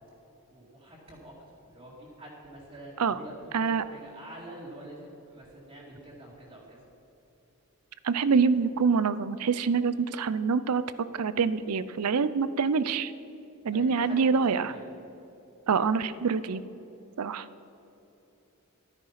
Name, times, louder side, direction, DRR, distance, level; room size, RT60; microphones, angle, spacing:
voice 1, 0.5-6.8 13.7-14.9, right 1 dB, 25° right, -6 dB, 2.2 m, -46 dB
voice 2, 3.5-3.8 8.0-10.8 11.2-13.1 13.6-14.7 15.7-16.6 17.2-17.5, right 5 dB, 85° right, 15 dB, 0.5 m, -25 dB
12.5 x 9.8 x 5.8 m, 3.0 s
head